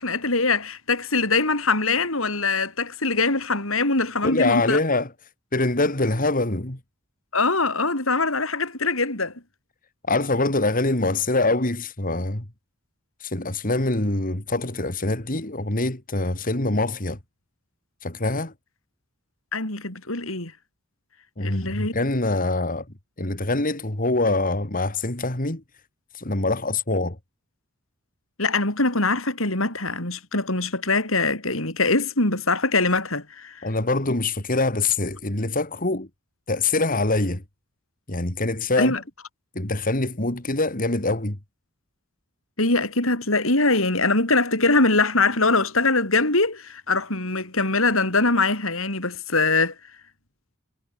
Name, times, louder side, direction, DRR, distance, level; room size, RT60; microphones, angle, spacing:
voice 1, 0.0-4.8 7.3-9.3 19.5-20.5 21.4-21.9 28.4-33.7 38.8-39.0 42.6-49.7, left 3 dB, 70° left, 7.1 m, -22 dB
voice 2, 4.2-5.1 5.5-6.8 10.1-12.4 13.2-17.2 18.0-18.5 21.4-22.8 23.2-25.6 26.1-27.2 33.6-36.1 36.5-37.4 38.1-38.9 39.5-41.4, left 2 dB, 40° left, 2.8 m, -24 dB
head